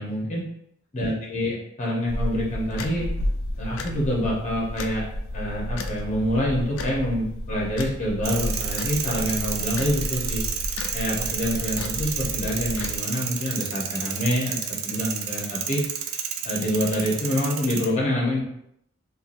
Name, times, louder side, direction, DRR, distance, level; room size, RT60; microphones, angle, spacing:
voice 1, 0.0-0.4 0.9-3.1 3.6-5.1 5.3-10.4 10.9-15.8 16.4-18.4, equal, 35° left, -4 dB, 0.9 m, -26 dB
sound 1, 2.1-13.0, left 1 dB, 75° left, 0.3 m, -32 dB
sound 2, 8.2-17.9, right 7 dB, 75° right, 0.4 m, -31 dB
2.8 x 2.4 x 2.5 m, 0.75 s
head